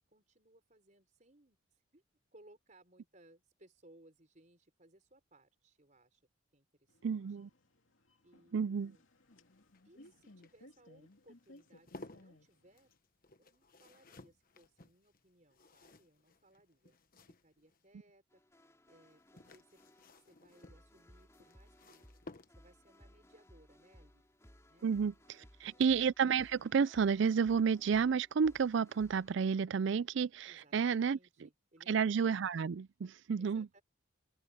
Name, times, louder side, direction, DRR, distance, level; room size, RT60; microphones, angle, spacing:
voice 1, 0.1-2.0 2.3-6.2 6.5-7.5 8.2-9.0 9.8-12.9 13.4-17.0 17.4-19.8 20.2-22.1 22.5-24.3 24.7-24.9 25.4-25.8 30.4-32.1 33.4-33.8, right 1 dB, 35° right, 5.0 m, -65 dB
sound 1, 6.9-13.0, left 1 dB, 70° left, 2.7 m, -62 dB
voice 2, 7.0-7.5 8.5-8.9 24.8-31.2 31.9-33.7, right 6 dB, 60° right, 0.4 m, -31 dB
sound 2, 9.1-17.9 19.0-23.0 24.6-24.9 25.2-25.3, left 2 dB, 45° left, 1.2 m, -58 dB
sound 3, 18.3-29.3, equal, 15° left, 3.6 m, -62 dB
open air
head